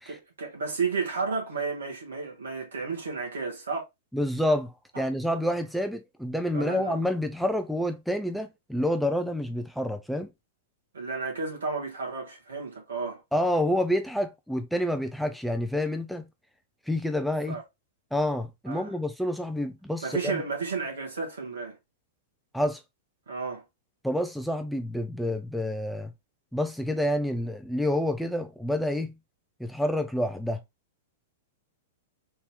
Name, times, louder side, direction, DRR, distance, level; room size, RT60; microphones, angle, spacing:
voice 1, 0.1-3.8 4.9-5.0 6.5-7.0 10.9-13.2 17.5-17.6 18.7-18.9 20.0-21.8 23.3-23.6, right 4 dB, 65° right, 1.4 m, -32 dB
voice 2, 4.1-10.3 13.3-16.2 16.9-17.6 18.1-20.4 22.5-22.8 24.0-26.1 26.5-29.1 29.6-30.6, left 1 dB, ahead, 0.3 m, -28 dB
3.5 x 2.8 x 3.0 m
figure-of-eight pair, 100°, 0 cm